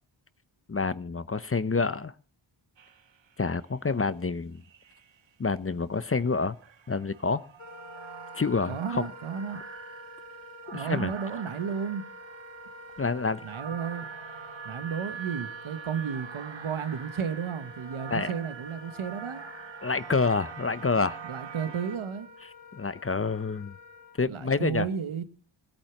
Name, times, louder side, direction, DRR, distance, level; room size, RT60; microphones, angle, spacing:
voice 1, 0.7-2.1 3.4-4.6 5.4-6.6 6.9-7.4 8.3-9.1 10.7-11.1 13.0-13.4 18.1-18.3 19.8-21.2 22.7-23.7 24.2-24.9, left 4 dB, 30° left, 16 dB, 0.7 m, -28 dB
sound 1, 2.8-3.6 4.6-5.3 6.0-22.0, right 7 dB, 65° right, 1.2 m, -45 dB
Wind instrument woodwind instrument, 7.6-24.2, equal, 75° left, 3.6 m, -47 dB
voice 2, 8.7-9.6 10.7-12.1 13.4-14.1 14.6-19.4 21.2-22.3 24.2-25.2, right 7 dB, 80° right, 11 dB, 1.5 m, -33 dB
18.0 x 8.9 x 5.9 m, 0.43 s
wide cardioid pair, 80°, 48 cm